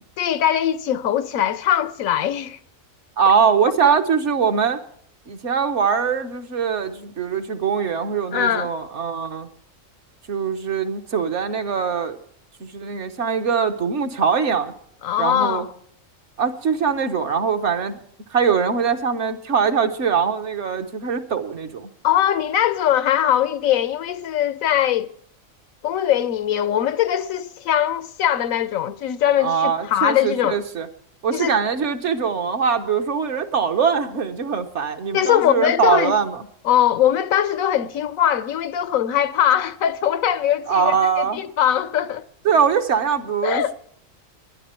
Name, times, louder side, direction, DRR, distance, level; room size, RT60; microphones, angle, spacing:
voice 1, 0.2-2.6 3.8-4.0 8.3-8.7 15.0-15.7 22.0-25.1 25.8-30.6 31.3-31.6 35.1-36.2 36.6-42.2 43.4-43.7, left 10 dB, 90° left, 1.1 m, -21 dB
voice 2, 3.2-4.8 5.3-9.5 10.3-12.2 12.6-14.7 15.2-15.7 16.4-18.0 18.3-21.9 29.4-30.9 31.2-36.5 40.7-41.4 42.4-43.7, right 6 dB, 60° right, 1.3 m, -22 dB
20.5 x 11.5 x 4.4 m
omnidirectional pair, 1.4 m